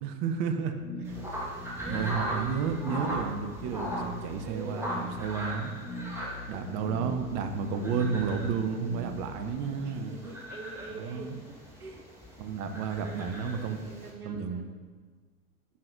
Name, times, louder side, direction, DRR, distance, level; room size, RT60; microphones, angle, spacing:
voice 1, 0.0-0.8 1.9-5.7 6.5-10.1 10.9-11.3 12.4-13.8 14.2-14.6, right 6 dB, 35° right, 7 dB, 0.6 m, -32 dB
sound 1, 0.8-9.8, left 2 dB, 60° left, 1.6 m, -41 dB
voice 2, 0.9-1.3 1.8-3.2 4.4-5.0 9.8-12.1 12.3-12.5 13.0-14.7, right 3 dB, 85° right, 5 dB, 0.8 m, -45 dB
sound 2, 1.0-14.1, right 1 dB, 5° right, 1.4 m, -40 dB
11.0 x 5.8 x 2.6 m, 1.5 s
figure-of-eight pair, 90°, 44 cm